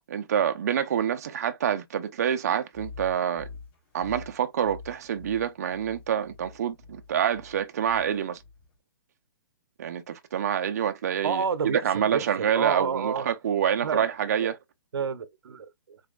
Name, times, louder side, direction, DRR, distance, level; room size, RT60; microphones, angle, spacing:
voice 1, 0.1-3.5 3.9-8.4 9.8-14.5, right 9 dB, 40° right, 0.7 m, -27 dB
sound 1, 2.7-8.8, left 4 dB, 25° left, 2.9 m, -46 dB
voice 2, 11.2-13.3 13.8-14.0 14.4-14.5 14.9-16.0, right 6 dB, 90° right, 0.9 m, -30 dB
5.0 x 4.1 x 2.4 m
hypercardioid pair, 175°, 13 cm